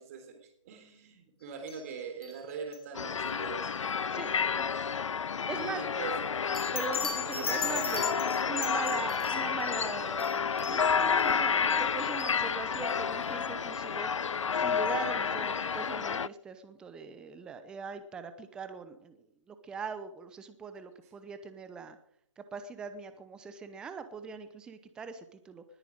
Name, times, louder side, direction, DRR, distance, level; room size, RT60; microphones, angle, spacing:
voice 1, 0.0-3.7 5.5-6.2 7.2-9.0, right 5 dB, 30° right, 5 dB, 3.6 m, -42 dB
sound 1, 1.7-1.9 2.2-2.4 2.7-2.8 6.5-12.3 12.7-12.9 13.2-13.3 13.7-13.8, left 6 dB, 50° left, 3.3 m, -39 dB
sound 2, 2.9-16.3, left 6 dB, 75° left, 0.5 m, -30 dB
voice 2, 4.1-4.7 5.5-5.8 6.7-14.1 14.5-22.0 22.4-25.6, right 5 dB, 5° right, 10 dB, 0.7 m, -41 dB
20.0 x 9.1 x 6.5 m, 0.71 s
hypercardioid pair, 160°, 16 cm